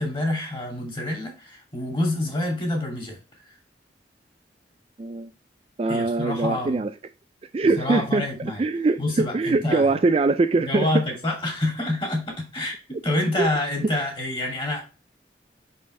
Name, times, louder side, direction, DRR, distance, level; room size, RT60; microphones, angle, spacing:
voice 1, 0.0-3.2 3.4-3.5 5.9-6.8 7.6-8.6 9.0-9.9 10.6-14.9, left 1 dB, 30° left, 2.5 m, -27 dB
voice 2, 5.0-5.3 5.8-6.9 7.5-8.3 8.6-10.9 13.4-13.5, right 3 dB, 30° right, 0.3 m, -22 dB
5.6 x 5.4 x 3.2 m
head